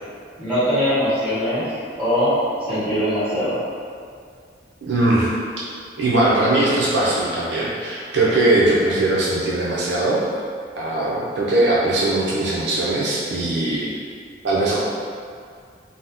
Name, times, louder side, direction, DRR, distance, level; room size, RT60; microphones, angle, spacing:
voice 1, 0.4-1.7 2.0-2.4 2.7-3.6, equal, 10° right, -16 dB, 1.3 m, -21 dB
voice 2, 4.8-5.3 6.0-10.2 10.7-13.9 14.4-14.8, right 2 dB, 70° right, -7 dB, 0.5 m, -20 dB
2.7 x 2.1 x 3.4 m, 2.2 s
head